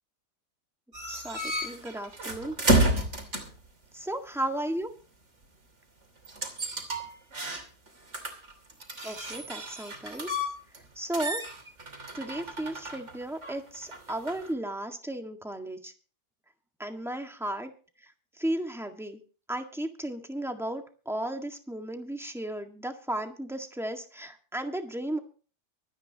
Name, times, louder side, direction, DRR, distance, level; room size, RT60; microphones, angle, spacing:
sound 1, 0.9-3.6 6.2-7.9 8.1-10.8 11.1-14.5, right 1 dB, 40° right, 3.2 m, -31 dB
voice 1, 1.1-2.8 3.9-4.9 9.0-10.3 10.9-11.4 12.1-15.9 16.8-17.7 18.0-18.1 18.4-19.2 19.5-25.2, right 1 dB, ahead, 4 dB, 1.6 m, -34 dB
24.5 x 9.9 x 2.9 m, 0.38 s
omnidirectional pair, 1.8 m